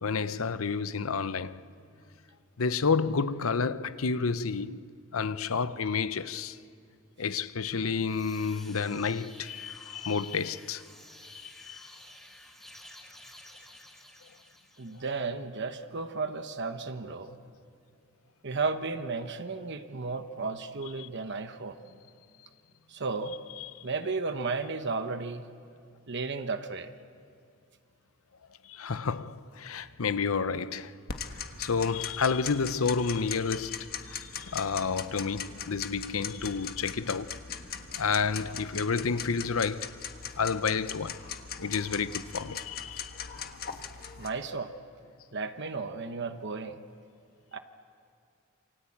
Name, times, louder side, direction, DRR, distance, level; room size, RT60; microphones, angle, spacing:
voice 1, 0.0-1.6 2.6-6.6 7.2-10.8 11.3-11.8 21.0-21.1 23.6-23.8 28.7-31.0 31.6-37.4 38.0-39.9 40.4-41.2 41.6-43.6, left 5 dB, 85° left, 0.8 m, -30 dB
sound 1, 7.8-15.2, left 1 dB, ahead, 4.4 m, -52 dB
voice 2, 14.8-17.4 18.4-21.8 22.9-23.3 23.8-25.5 26.1-26.9 44.2-44.7 45.3-46.8 47.5-47.6, right 4 dB, 60° right, 1.1 m, -34 dB
Tick-tock, 31.1-44.3, left 7 dB, 50° left, 1.5 m, -40 dB
28.0 x 24.5 x 8.7 m
head